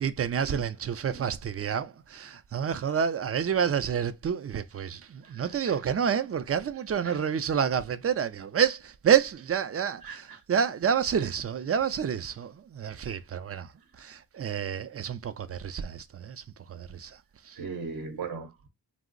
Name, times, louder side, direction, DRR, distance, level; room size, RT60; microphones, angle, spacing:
voice 1, 0.0-17.6, right 8 dB, 40° right, 0.4 m, -29 dB
voice 2, 5.2-5.8 7.0-7.2 10.0-10.4 11.1-11.2 17.5-18.7, right 5 dB, 65° right, 0.8 m, -39 dB
2.5 x 2.0 x 3.7 m
cardioid pair, 40°, 38 cm